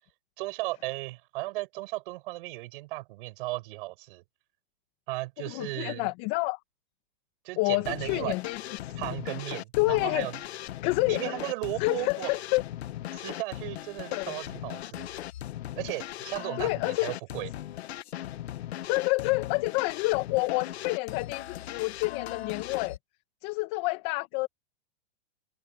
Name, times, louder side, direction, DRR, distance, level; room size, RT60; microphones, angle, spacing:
voice 1, 0.4-4.2 5.1-6.1 7.4-8.3 9.0-10.4 11.0-12.3 13.1-15.1 15.8-17.5, right 20 dB, 55° right, 6.6 m, -35 dB
voice 2, 5.4-6.6 7.6-9.2 9.8-10.3 10.8-11.4 11.8-12.6 14.1-14.4 16.6-17.1 18.9-23.0 23.4-24.5, left 24 dB, 45° left, 1.5 m, -28 dB
sound 1, 7.8-23.0, left 13 dB, 80° left, 1.4 m, -38 dB
hypercardioid pair, 140°, 32 cm